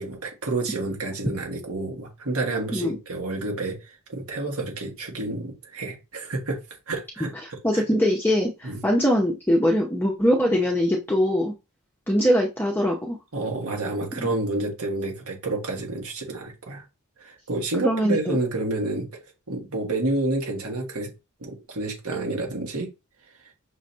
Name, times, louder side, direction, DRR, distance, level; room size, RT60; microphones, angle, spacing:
voice 1, 0.0-7.8 8.6-8.8 13.3-16.8 17.2-21.1 21.4-22.9, right 2 dB, 75° right, 1.5 m, -29 dB
voice 2, 7.6-11.5 12.1-13.2 17.8-18.4, equal, 10° left, 0.7 m, -22 dB
6.1 x 3.2 x 2.7 m
head